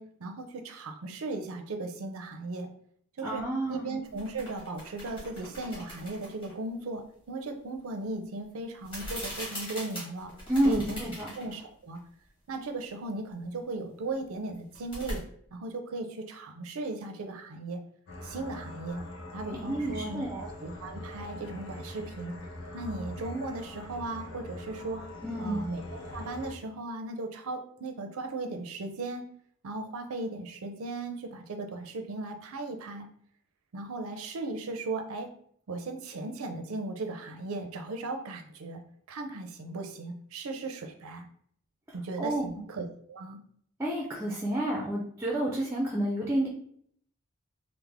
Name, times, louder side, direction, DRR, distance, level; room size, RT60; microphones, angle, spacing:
voice 1, 0.0-2.7 3.2-10.3 10.6-11.0 11.4-12.0 12.5-15.2 15.5-17.8 18.2-19.0 19.3-22.3 22.7-25.0 25.4-29.3 29.6-33.1 33.7-35.3 35.7-38.8 39.1-41.2 41.9-43.4, right 2 dB, 80° right, 5 dB, 0.5 m, -37 dB
voice 2, 3.2-3.9 10.5-11.3 19.5-20.4 25.2-25.6 42.2-42.6 43.8-46.5, right 1 dB, 10° right, -1 dB, 0.4 m, -30 dB
sound 1, 4.0-6.5 8.8-11.6 11.9-12.0 14.5-15.2, equal, 25° left, 1.3 m, -41 dB
sound 2, 18.1-26.5, left 1 dB, 80° left, 0.8 m, -43 dB
3.3 x 2.0 x 3.4 m, 0.63 s
head